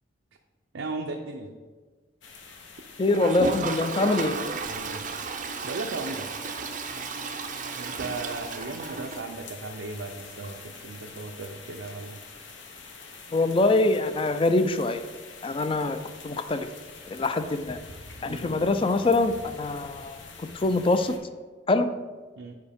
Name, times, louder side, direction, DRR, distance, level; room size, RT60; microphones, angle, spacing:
voice 1, 0.7-1.6 4.7-6.3 7.8-12.2 18.3-18.7 22.4-22.5, right 3 dB, 85° right, 1 dB, 0.6 m, -37 dB
sound 1, 2.2-21.2, left 4 dB, 75° left, 0.8 m, -46 dB
voice 2, 3.0-4.4 13.3-15.0 15.4-16.0 16.2-16.7 17.1-17.8 18.2-21.1 21.7-21.9, left 2 dB, 25° left, 10 dB, 0.4 m, -24 dB
Toilet flush, 3.1-9.8 10.1-10.2 10.4-10.5 10.8-10.9 13.4-13.5 14.8-14.9, right 4 dB, 40° right, 0.5 m, -34 dB
9.5 x 4.6 x 3.5 m, 1.4 s
head